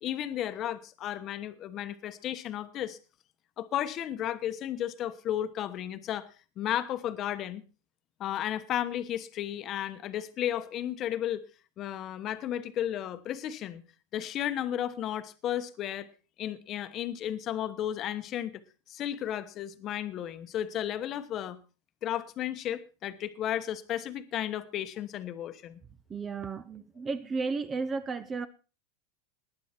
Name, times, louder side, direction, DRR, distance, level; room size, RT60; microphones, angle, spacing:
voice 1, 0.0-3.0 3.6-6.3 6.6-7.6 8.2-11.4 11.8-13.8 14.1-16.1 16.4-18.6 18.9-21.6 22.0-25.8, left 11 dB, 30° left, 1.1 m, -33 dB
voice 2, 26.1-28.5, right 4 dB, 15° right, 0.7 m, -33 dB
19.5 x 9.3 x 4.4 m
supercardioid pair, 160°, 0 cm